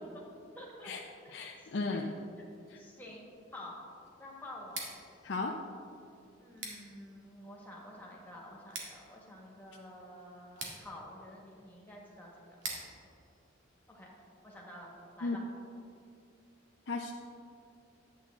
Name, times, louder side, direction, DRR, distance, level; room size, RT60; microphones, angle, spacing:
voice 1, 0.5-0.9 1.2-1.3 2.4-3.8 4.2-4.9 6.4-12.5 13.9-14.1 14.4-15.4, left 1 dB, 10° left, -3 dB, 1.7 m, -49 dB
voice 2, 1.3-2.0 2.7-2.8 5.2-5.5 15.2-15.4 16.9-17.1, left 3 dB, 65° left, 1 dB, 0.5 m, -35 dB
Scissors, 4.6-14.4, right 3 dB, 75° right, 1.8 m, -49 dB
11.0 x 8.5 x 3.7 m, 2.5 s
head